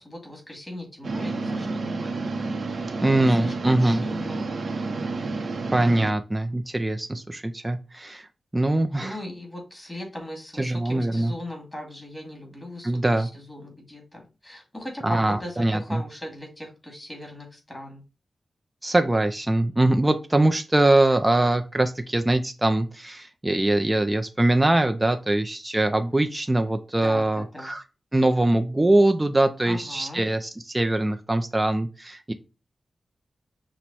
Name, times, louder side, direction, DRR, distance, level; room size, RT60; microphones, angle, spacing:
voice 1, 0.0-2.4 3.3-4.5 9.0-18.0 27.0-27.7 29.6-30.3, left 1 dB, 10° left, 0 dB, 1.9 m, -39 dB
sound 1, 1.0-6.1, right 3 dB, 60° right, 0.7 m, -30 dB
voice 2, 3.0-4.0 5.7-8.3 8.5-9.2 10.6-11.3 12.8-13.3 15.0-16.0 18.8-27.8 28.1-32.3, right 1 dB, 15° right, 6 dB, 0.4 m, -22 dB
6.0 x 2.1 x 4.1 m, 0.30 s
wide cardioid pair, 90°, 0 cm